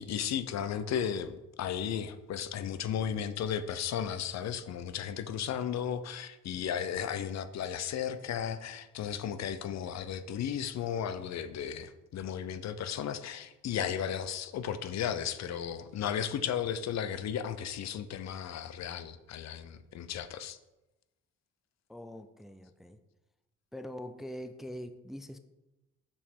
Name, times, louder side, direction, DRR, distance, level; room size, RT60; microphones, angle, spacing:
voice 1, 0.0-20.6, left 8 dB, 60° left, 0.6 m, -35 dB
voice 2, 21.9-23.0 23.7-25.4, equal, ahead, 0.4 m, -43 dB
7.1 x 5.1 x 4.4 m
cardioid pair, 90°, 30 cm